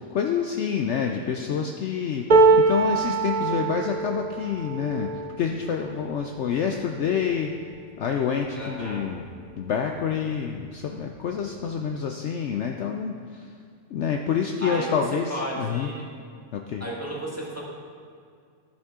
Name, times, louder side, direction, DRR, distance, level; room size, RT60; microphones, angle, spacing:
voice 1, 0.0-5.1 5.4-7.5 8.0-9.2 9.6-13.5 13.9-15.9 16.5-16.9, left 7 dB, 65° left, 3 dB, 0.8 m, -27 dB
voice 2, 0.9-1.3 8.6-9.1 14.6-16.1 16.8-17.6, right 1 dB, 10° right, -4 dB, 1.4 m, -33 dB
sound 1, 2.3-8.4 9.0-9.2 9.5-10.3 11.2-11.3, right 3 dB, 45° right, 0.6 m, -24 dB
13.0 x 7.2 x 3.7 m, 2.2 s
omnidirectional pair, 1.5 m